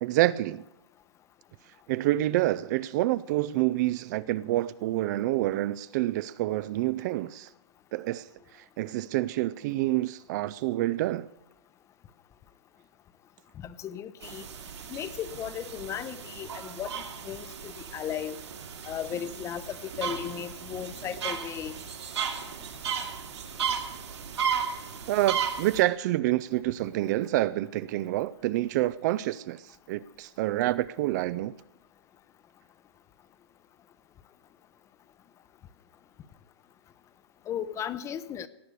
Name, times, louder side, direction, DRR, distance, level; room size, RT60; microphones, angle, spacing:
voice 1, 0.0-0.6 1.9-7.5 7.9-8.3 8.5-11.3 25.1-31.5, right 16 dB, 40° right, 0.4 m, -27 dB
voice 2, 13.6-14.5 14.9-18.4 18.9-21.7 37.5-38.5, left 9 dB, 20° left, 0.7 m, -36 dB
sound 1, 14.2-25.8, right 7 dB, 75° right, 2.5 m, -35 dB
17.0 x 6.6 x 8.1 m
hypercardioid pair, 125°, 15 cm